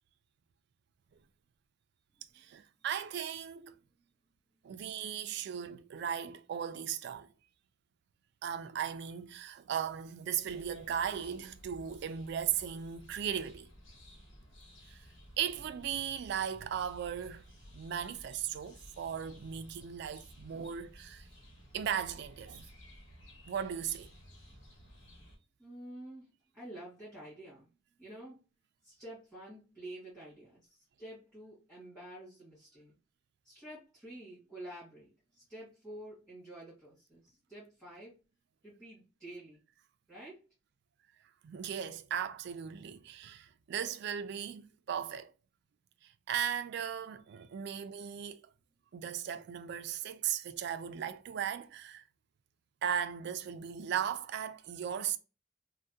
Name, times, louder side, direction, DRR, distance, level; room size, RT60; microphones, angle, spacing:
voice 1, 2.3-3.8 4.6-7.3 8.4-13.7 14.9-15.1 15.4-17.4 17.7-21.3 21.7-22.6 23.5-24.1 41.4-45.3 46.0-48.4 48.9-52.0 52.8-55.2, right 8 dB, 60° right, 0.3 m, -37 dB
sound 1, 10.4-25.4, equal, 80° left, 1.1 m, -56 dB
voice 2, 25.6-26.3 26.5-27.7 28.0-28.4 28.8-32.9 33.4-37.2 37.5-38.2 38.6-39.6 40.1-40.4, right 1 dB, ahead, 1.6 m, -49 dB
3.4 x 2.1 x 2.6 m
head